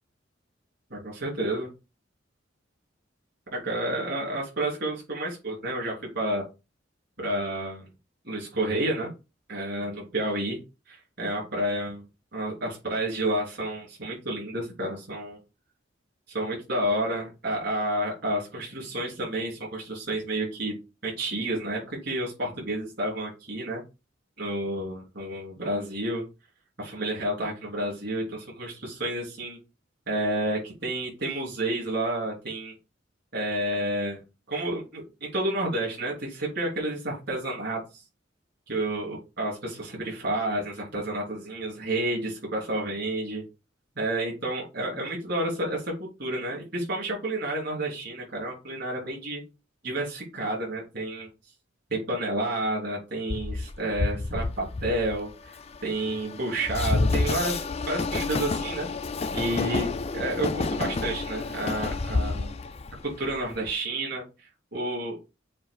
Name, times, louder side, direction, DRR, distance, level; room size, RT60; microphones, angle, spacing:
voice 1, 0.9-1.7 3.5-6.4 7.2-7.9 8.2-9.1 9.5-10.6 10.9-12.0 12.3-15.4 16.3-20.7 21.0-23.8 24.4-26.2 26.8-29.6 30.1-32.7 33.3-34.2 34.5-37.8 38.7-43.4 44.0-45.9 46.2-49.4 49.8-51.3 51.9-55.5 55.8-58.9 59.3-59.9 60.1-62.5 63.0-65.2, right 1 dB, 60° right, -4 dB, 3.6 m, -30 dB
Train, 53.3-63.7, left 3 dB, 35° left, 0.4 m, -29 dB
7.3 x 2.6 x 4.9 m, 0.28 s
head